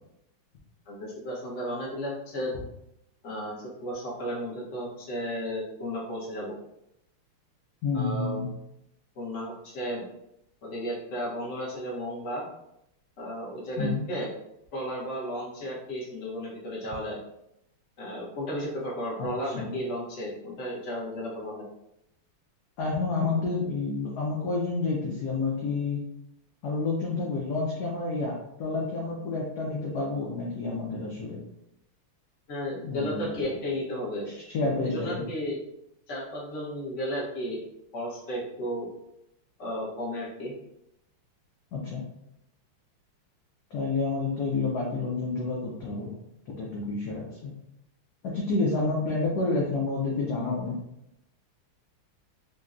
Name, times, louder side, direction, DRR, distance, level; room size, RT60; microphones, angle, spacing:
voice 1, 0.9-2.5 3.2-6.6 7.9-8.4 9.1-10.0 10.6-12.4 13.2-14.3 14.7-17.2 18.0-21.7 32.5-34.3 34.8-35.6 36.1-37.6 37.9-38.9 39.6-40.5, equal, 50° left, -5 dB, 0.9 m, -34 dB
voice 2, 7.8-8.5 13.8-14.0 19.2-19.7 22.8-26.0 26.6-31.4 32.8-33.3 34.3-35.3 41.7-42.0 43.7-46.1 46.5-47.5 48.2-50.8, left 3 dB, 80° left, -3 dB, 0.9 m, -29 dB
4.1 x 2.2 x 2.4 m, 0.82 s
omnidirectional pair, 2.4 m